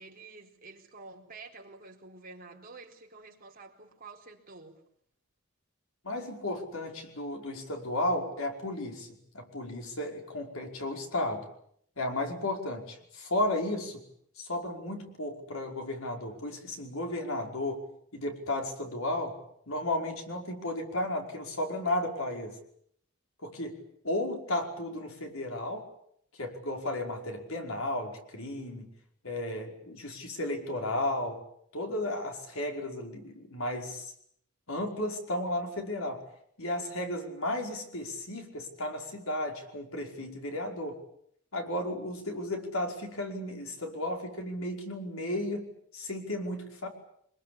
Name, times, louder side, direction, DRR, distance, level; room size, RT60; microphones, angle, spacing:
voice 1, 0.0-4.8 36.9-37.3, right 3 dB, 45° right, 1 dB, 4.3 m, -49 dB
voice 2, 6.0-9.1 9.3-11.5 12.0-14.0 14.4-19.4 19.7-22.6 23.4-25.9 26.4-28.9 29.2-31.4 31.7-34.1 34.7-36.2 36.6-41.0 41.5-46.9, left 1 dB, 85° left, 2 dB, 5.2 m, -34 dB
25.5 x 22.0 x 8.7 m, 0.71 s
head